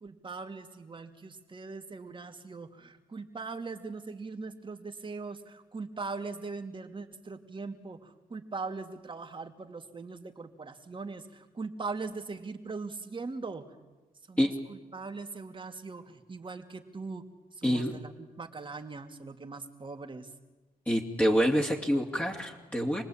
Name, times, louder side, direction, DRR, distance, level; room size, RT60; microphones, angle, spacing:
voice 1, 0.0-13.7 14.3-17.3 17.6-20.3, right 4 dB, 35° right, 5 dB, 2.6 m, -40 dB
voice 2, 17.6-17.9 20.9-23.0, equal, 10° left, -2 dB, 2.9 m, -27 dB
28.0 x 19.5 x 8.8 m, 1.2 s
cardioid pair, 80°, 15 cm